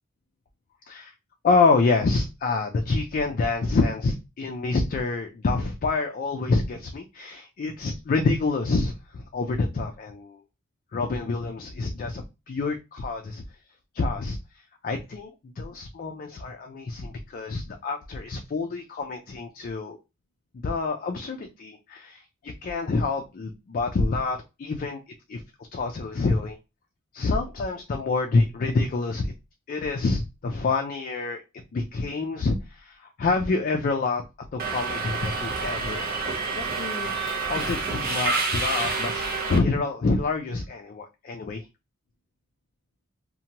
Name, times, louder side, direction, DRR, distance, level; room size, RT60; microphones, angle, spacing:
voice 1, 1.4-10.4 10.9-13.4 13.9-14.4 14.8-15.3 15.6-20.0 20.6-25.0 25.3-25.4 25.7-26.6 27.1-29.3 29.7-31.4 31.7-34.2 34.5-37.1 37.5-41.6, left 3 dB, 40° left, 4 dB, 0.3 m, -27 dB
Subway metro underground, 34.6-39.6, right 4 dB, 45° right, 0.6 m, -28 dB
2.7 x 2.1 x 2.8 m, 0.26 s
head